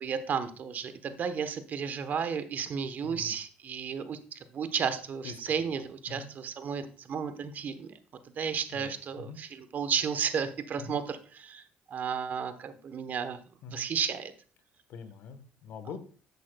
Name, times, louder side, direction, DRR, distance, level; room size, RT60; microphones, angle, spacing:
voice 1, 0.0-7.9 8.4-9.5 9.7-13.4 13.7-14.3, right 7 dB, 55° right, 11 dB, 1.0 m, -33 dB
voice 2, 3.0-3.4 5.2-5.7 6.1-6.3 8.7-9.4 10.8-11.0 13.6-13.8 14.9-16.0, left 5 dB, 70° left, 10 dB, 1.2 m, -44 dB
10.5 x 8.2 x 2.3 m, 0.39 s
supercardioid pair, 70°, 4 cm